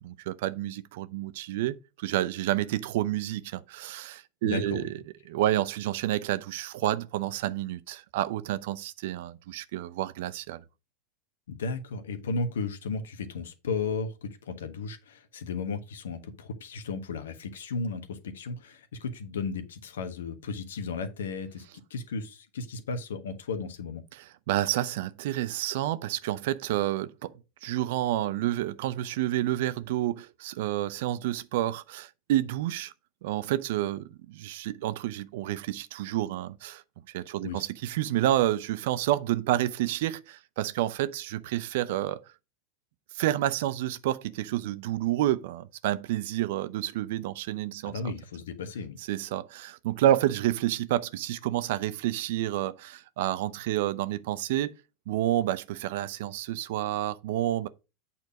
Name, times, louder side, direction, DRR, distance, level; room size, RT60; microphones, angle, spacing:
voice 1, 0.0-4.8 5.3-10.6 24.1-27.3 27.6-32.9 33.2-36.8 37.1-42.2 43.1-48.1 49.1-54.7 55.1-57.7, right 13 dB, 65° right, 0.6 m, -29 dB
voice 2, 4.4-4.9 11.5-21.6 21.9-24.0 37.4-37.7 47.9-49.0, left 4 dB, 75° left, 1.4 m, -34 dB
8.4 x 4.5 x 5.1 m
hypercardioid pair, 90°, 0 cm